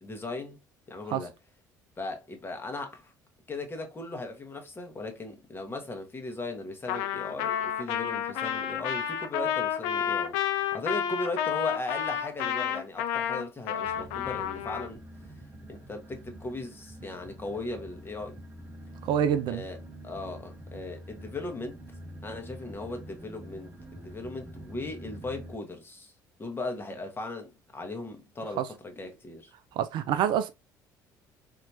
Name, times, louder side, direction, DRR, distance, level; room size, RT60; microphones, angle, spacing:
voice 1, 0.0-0.6 0.9-1.3 2.0-3.1 3.5-15.0 15.7-18.4 19.5-19.8 20.0-21.8 22.2-26.1 26.4-29.5, left 2 dB, 20° left, 1.2 m, -38 dB
Trumpet, 6.9-14.9, left 9 dB, 60° left, 0.5 m, -30 dB
sound 1, 13.8-25.6, right 1 dB, 15° right, 0.9 m, -46 dB
voice 2, 19.0-19.6 28.6-28.7 29.8-30.5, right 9 dB, 50° right, 0.3 m, -26 dB
4.3 x 2.8 x 2.6 m
figure-of-eight pair, 55°, 10 cm